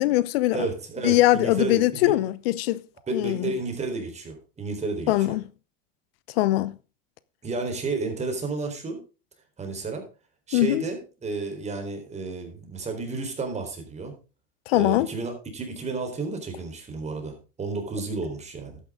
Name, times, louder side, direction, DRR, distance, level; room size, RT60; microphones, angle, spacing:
voice 1, 0.0-0.7 1.0-2.8 3.1-3.5 5.1-5.4 6.4-6.8 10.5-10.8 14.7-15.1, left 16 dB, 80° left, 0.8 m, -22 dB
voice 2, 0.5-2.2 3.1-5.4 7.4-9.0 9.6-10.0 10.5-14.1 14.7-18.8, right 3 dB, 20° right, 4.0 m, -32 dB
12.0 x 9.6 x 3.7 m
supercardioid pair, 115°, 30 cm